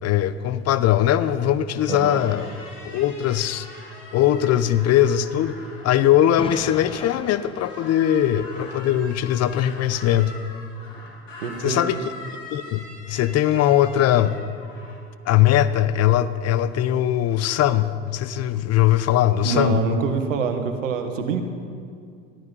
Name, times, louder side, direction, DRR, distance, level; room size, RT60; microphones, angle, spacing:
voice 1, 0.0-2.5 2.8-3.7 4.1-5.6 5.8-10.4 11.6-12.0 12.5-14.4 15.3-19.8, left 12 dB, 45° left, 14 dB, 0.7 m, -20 dB
sound 1, 1.8-7.3 7.6-15.0, left 2 dB, 90° left, 2.7 m, -42 dB
voice 2, 1.9-2.2 11.4-12.0 19.4-21.4, right 5 dB, 85° right, 7 dB, 1.4 m, -25 dB
Explosion, 6.4-8.6, left 3 dB, 15° left, 1.1 m, -38 dB
13.5 x 12.0 x 5.4 m, 2.2 s
hypercardioid pair, 80°, 37 cm